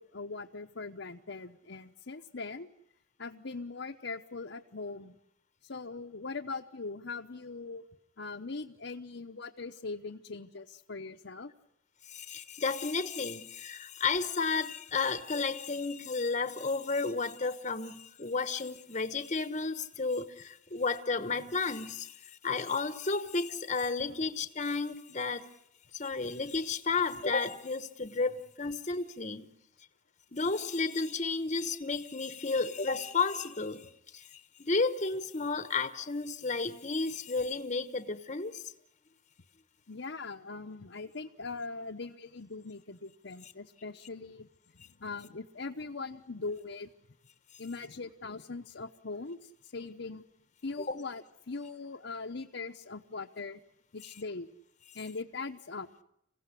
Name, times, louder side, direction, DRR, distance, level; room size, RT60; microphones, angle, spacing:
voice 1, 0.0-2.7 3.2-5.2 5.6-7.8 8.2-11.5 39.9-44.5 44.8-46.9 47.6-50.2 50.6-53.6 53.9-54.5 54.9-55.9, left 3 dB, 65° left, 2 dB, 1.0 m, -41 dB
voice 2, 12.0-25.5 25.9-29.5 30.3-38.6 50.8-51.0, left 4 dB, 35° left, 11 dB, 1.1 m, -32 dB
27.0 x 16.5 x 9.9 m, 0.79 s
head